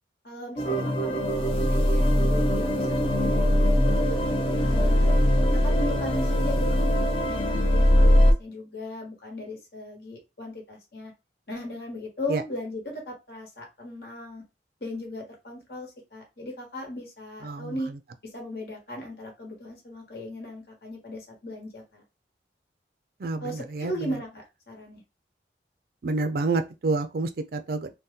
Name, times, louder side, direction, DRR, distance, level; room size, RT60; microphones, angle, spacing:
voice 1, 0.2-4.0 4.6-5.1 5.5-11.1 11.5-14.4 14.8-17.9 18.2-22.0 23.4-25.0, left 1 dB, 60° left, 1.3 m, -37 dB
sound 1, 0.6-8.3, equal, 30° left, 0.5 m, -21 dB
voice 2, 17.4-17.8 23.2-24.1 26.0-27.9, right 3 dB, 55° right, 0.4 m, -28 dB
2.7 x 2.2 x 3.6 m
head